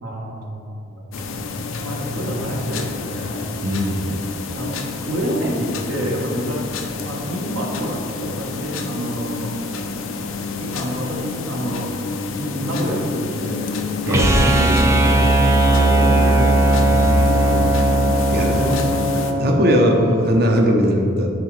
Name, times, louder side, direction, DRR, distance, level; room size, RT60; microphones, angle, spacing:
voice 1, 0.0-1.6 1.8-3.6 4.5-4.8 5.0-6.6 7.0-9.5 10.6-11.9 12.4-15.3 15.7-17.7 18.3-19.4, equal, 75° right, -1 dB, 1.1 m, -28 dB
sound 1, 1.1-19.3, left 4 dB, 80° left, 0.5 m, -29 dB
voice 2, 3.6-4.2 14.1-14.3 18.3-18.6 19.4-21.3, equal, 50° right, 2 dB, 0.7 m, -18 dB
sound 2, 14.1-20.2, right 1 dB, 15° right, 0.4 m, -17 dB
9.5 x 3.9 x 3.2 m, 2.6 s
head